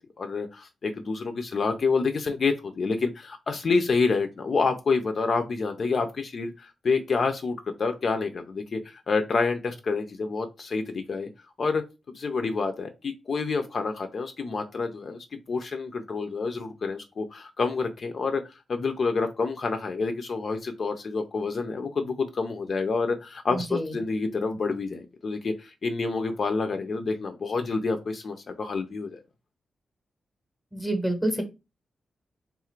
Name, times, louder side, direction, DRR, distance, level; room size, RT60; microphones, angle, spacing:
voice 1, 0.2-11.3 11.6-15.2 15.5-18.4 18.7-29.2, left 4 dB, 45° left, 6 dB, 0.4 m, -28 dB
voice 2, 23.5-23.9 30.7-31.4, right 1 dB, 5° right, 5 dB, 0.8 m, -28 dB
3.5 x 2.4 x 4.3 m, 0.26 s
wide cardioid pair, 175°, 0 cm